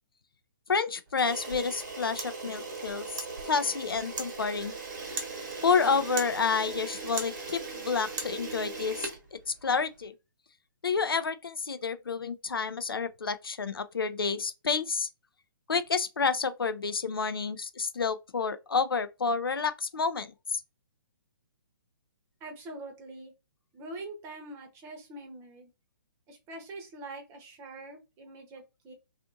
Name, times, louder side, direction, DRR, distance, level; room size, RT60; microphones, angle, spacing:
voice 1, 0.7-3.1 3.4-4.7 5.6-9.1 9.6-10.1 10.8-15.1 15.7-20.6, left 5 dB, 85° left, 0.4 m, -29 dB
Camera, 1.1-9.9, right 4 dB, 55° right, 1.0 m, -38 dB
voice 2, 22.4-23.3 23.7-25.7 26.3-28.9, right 2 dB, 20° right, 0.7 m, -44 dB
2.5 x 2.5 x 2.5 m
figure-of-eight pair, 130°, 12 cm